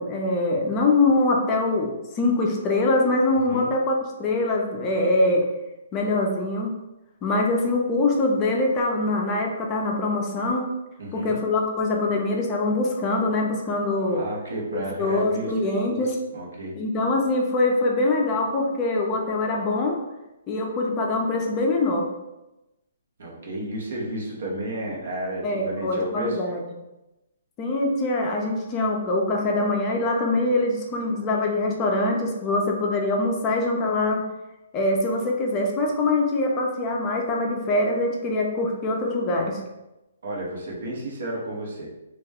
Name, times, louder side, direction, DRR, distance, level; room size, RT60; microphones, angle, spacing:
voice 1, 0.0-5.4 5.9-6.7 7.2-10.7 11.1-14.2 14.7-16.2 16.8-20.0 20.5-22.1 25.4-26.6 27.6-34.2 34.7-39.6, left 2 dB, 25° left, 0 dB, 0.4 m, -23 dB
voice 2, 11.0-11.3 14.0-16.7 23.2-26.4 40.2-41.9, right 1 dB, 70° right, -2 dB, 0.8 m, -32 dB
2.3 x 2.1 x 3.4 m, 0.98 s
hypercardioid pair, 155°, 0 cm